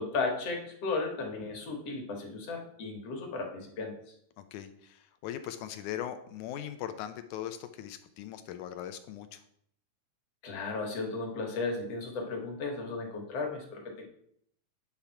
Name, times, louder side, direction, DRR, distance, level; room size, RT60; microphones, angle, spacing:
voice 1, 0.0-3.9 10.4-14.0, left 3 dB, 55° left, 2 dB, 2.1 m, -35 dB
voice 2, 4.4-9.4, left 10 dB, 80° left, 10 dB, 1.8 m, -40 dB
9.7 x 3.5 x 5.7 m, 0.69 s
omnidirectional pair, 3.8 m